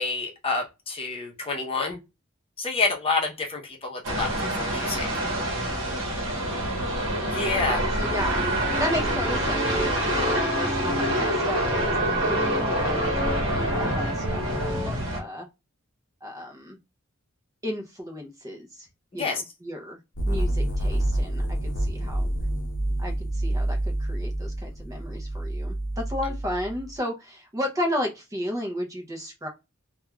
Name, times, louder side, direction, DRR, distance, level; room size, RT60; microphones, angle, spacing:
voice 1, 0.0-2.0 2.6-5.1 7.3-7.8 19.1-19.4, left 3 dB, 25° left, 0.7 m, -28 dB
sound 1, 4.0-15.2, right 1 dB, 65° right, 1.0 m, -26 dB
voice 2, 5.8-6.7 7.5-15.5 16.2-16.8 17.6-18.9 19.1-20.0 20.3-22.3 23.0-29.5, left 1 dB, 15° right, 0.5 m, -34 dB
sound 2, 7.5-14.9, equal, 5° left, 1.0 m, -34 dB
sound 3, 20.2-26.9, right 1 dB, 65° left, 0.7 m, -28 dB
2.3 x 2.3 x 2.9 m
head